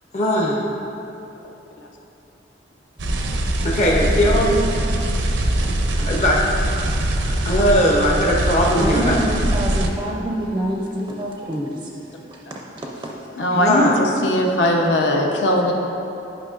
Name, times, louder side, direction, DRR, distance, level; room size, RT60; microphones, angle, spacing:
voice 1, 0.1-0.6 3.6-4.7 5.4-5.6 6.0-6.4 7.5-9.2 13.5-14.0, equal, 40° left, -3 dB, 0.7 m, -19 dB
sound 1, 3.0-9.9, right 1 dB, 85° right, 0.6 m, -22 dB
voice 2, 8.8-11.7, equal, 20° right, -1 dB, 0.4 m, -25 dB
voice 3, 13.4-15.7, left 1 dB, 75° left, 1 dB, 0.8 m, -19 dB
11.0 x 5.4 x 2.4 m, 2.9 s
head